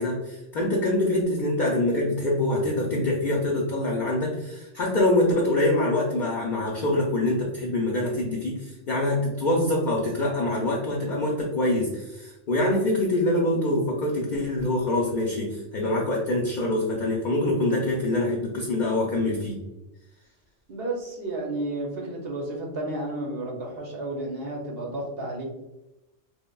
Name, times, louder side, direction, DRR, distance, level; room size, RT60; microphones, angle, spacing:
voice 1, 0.0-19.6, left 1 dB, 55° left, -2 dB, 0.5 m, -25 dB
voice 2, 20.7-25.4, right 2 dB, 60° right, -1 dB, 0.8 m, -32 dB
3.1 x 2.1 x 2.2 m, 0.96 s
omnidirectional pair, 1.2 m